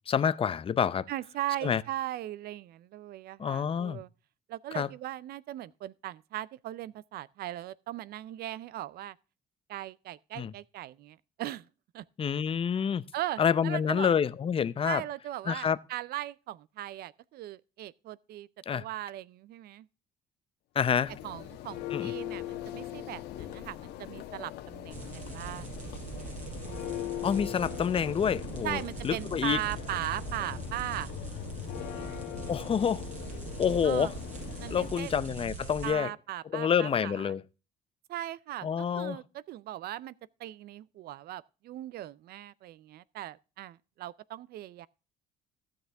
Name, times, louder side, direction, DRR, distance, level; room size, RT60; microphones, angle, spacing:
voice 1, 0.1-1.1 1.6-1.8 3.4-4.0 4.7-4.9 10.4-10.5 12.2-13.0 13.4-15.0 15.5-15.8 18.7-18.8 20.8-21.1 21.9-22.1 27.2-29.6 32.5-33.0 33.6-34.1 34.7-36.1 36.5-37.4 38.6-39.2, left 7 dB, 35° left, 0.6 m, -28 dB
voice 2, 1.1-4.1 4.5-9.2 9.7-11.7 11.9-12.0 13.1-14.1 14.8-19.9 21.2-27.1 28.6-31.1 31.8-32.2 33.8-34.1 34.6-35.1 35.8-37.3 38.1-40.1 40.4-44.9, right 14 dB, 65° right, 0.5 m, -39 dB
Church bell, 20.9-35.1, left 13 dB, 85° left, 1.2 m, -40 dB
sound 1, 24.9-35.9, right 5 dB, 45° right, 5.1 m, -42 dB
15.5 x 6.6 x 3.4 m
cardioid pair, 110°, 17 cm